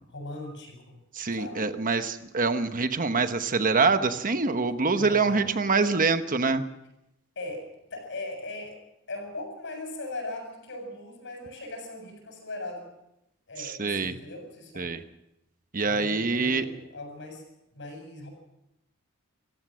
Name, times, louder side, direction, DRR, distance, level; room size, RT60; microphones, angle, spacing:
voice 1, 0.1-1.0 1.3-1.7 4.9-5.5 7.4-8.8 9.1-12.9 13.5-14.9 15.8-17.4 17.7-18.3, left 2 dB, 60° left, 5 dB, 7.3 m, -39 dB
voice 2, 1.2-6.6 13.6-14.2 14.8-15.0 15.7-16.7, right 4 dB, 40° right, 9 dB, 1.0 m, -25 dB
26.5 x 15.5 x 6.3 m, 0.87 s
head